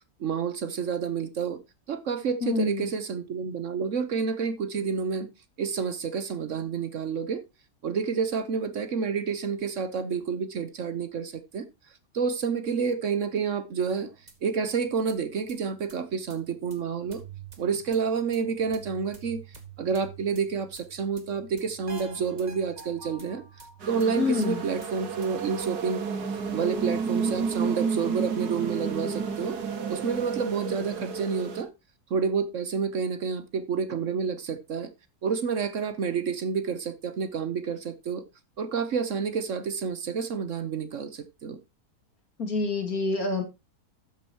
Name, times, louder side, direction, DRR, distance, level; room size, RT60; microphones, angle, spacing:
voice 1, 0.2-1.6 1.9-5.3 5.6-7.4 7.8-11.6 12.1-14.1 14.4-17.2 17.6-23.4 23.9-26.0 26.5-29.6 29.9-31.7 32.1-34.9 35.2-38.2 38.6-41.6, right 6 dB, 55° right, 1.1 m, -29 dB
voice 2, 2.4-2.9 24.2-24.6 42.4-43.4, left 3 dB, 65° left, 2.8 m, -27 dB
sound 1, 13.9-25.8, right 6 dB, 25° right, 1.7 m, -49 dB
sound 2, 23.8-31.6, right 5 dB, 80° right, 2.0 m, -31 dB
12.5 x 8.8 x 2.9 m
omnidirectional pair, 1.7 m